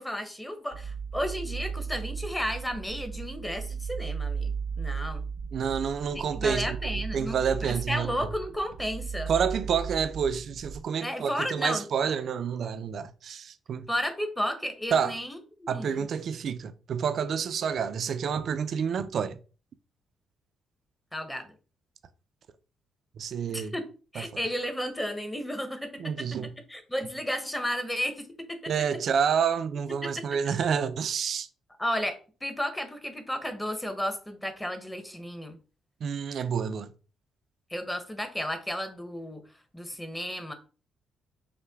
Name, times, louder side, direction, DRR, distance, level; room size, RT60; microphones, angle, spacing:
voice 1, 0.0-4.5 4.8-5.2 6.1-9.3 11.0-11.9 13.9-16.1 21.1-21.5 23.5-23.8 24.1-26.3 26.7-28.7 30.0-30.1 31.8-35.6 37.7-39.4 39.7-40.5, equal, 10° left, 0.9 m, -33 dB
sound 1, 0.7-10.8, right 6 dB, 80° right, 0.8 m, -36 dB
voice 2, 5.5-6.8 7.1-8.1 9.3-13.9 14.9-15.1 15.7-19.4 23.2-23.8 26.0-26.5 28.7-31.5 36.0-36.9, right 7 dB, 60° right, 0.4 m, -29 dB
5.6 x 2.2 x 3.5 m
cardioid pair, 90°, 0 cm